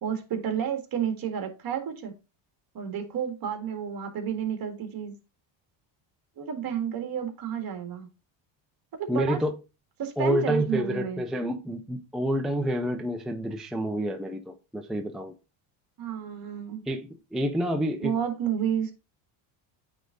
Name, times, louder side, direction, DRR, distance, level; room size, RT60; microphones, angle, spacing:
voice 1, 0.0-2.1 2.7-5.1 6.4-8.1 9.0-9.4 10.0-11.2 16.0-16.8 18.0-18.9, right 8 dB, 45° right, 1.8 m, -31 dB
voice 2, 9.1-9.5 10.2-15.3 16.9-18.1, equal, ahead, 0.5 m, -28 dB
9.0 x 3.6 x 3.8 m
cardioid pair, 125°, 50 cm